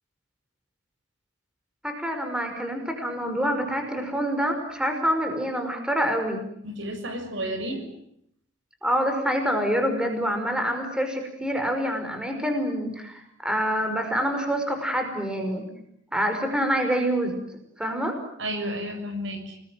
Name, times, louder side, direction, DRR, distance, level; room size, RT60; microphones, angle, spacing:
voice 1, 1.8-6.4 8.8-15.7 16.1-17.4 17.8-18.2, equal, 5° right, 5 dB, 5.4 m, -26 dB
voice 2, 6.6-7.8 18.4-19.6, equal, 70° right, 7 dB, 6.6 m, -31 dB
29.5 x 20.5 x 9.1 m, 0.73 s
head